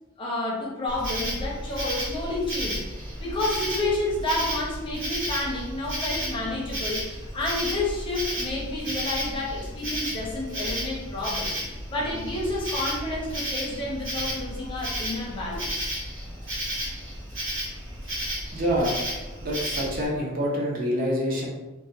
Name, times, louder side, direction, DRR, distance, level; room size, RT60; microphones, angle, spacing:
voice 1, 0.2-2.9 3.2-11.6 11.9-15.9, left 2 dB, 25° left, -4 dB, 0.5 m, -30 dB
Insect, 0.9-20.1, equal, 65° right, 1.1 m, -33 dB
voice 2, 18.5-18.9 19.4-21.5, equal, 45° right, -3 dB, 0.5 m, -26 dB
2.3 x 2.1 x 2.6 m, 1.1 s
head